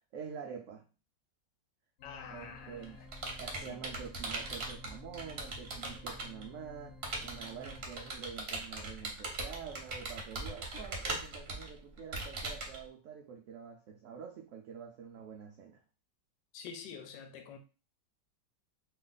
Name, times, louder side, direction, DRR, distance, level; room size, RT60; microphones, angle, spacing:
voice 1, 0.1-0.9 2.3-3.0 3.4-15.8, right 7 dB, 85° right, 0.6 m, -47 dB
voice 2, 2.0-3.1 3.6-3.8 16.5-17.6, left 6 dB, 80° left, 1.2 m, -47 dB
sound 1, 2.0-7.8, left 3 dB, 65° left, 0.6 m, -54 dB
Computer keyboard, 2.4-6.4 7.0-12.8, right 2 dB, 50° right, 0.7 m, -40 dB
2.9 x 2.4 x 3.8 m
omnidirectional pair, 1.9 m